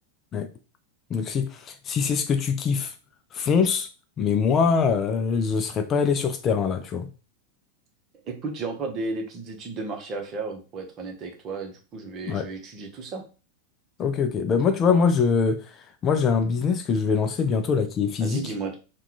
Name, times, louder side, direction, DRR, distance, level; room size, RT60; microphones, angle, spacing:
voice 1, 1.1-2.9 3.3-3.9 4.2-7.1 12.3-12.5 14.0-18.5, left 6 dB, 30° left, 0.4 m, -23 dB
voice 2, 8.2-13.2 18.2-18.8, right 3 dB, 35° right, 1.0 m, -33 dB
4.3 x 2.4 x 3.9 m
figure-of-eight pair, 90°, 0 cm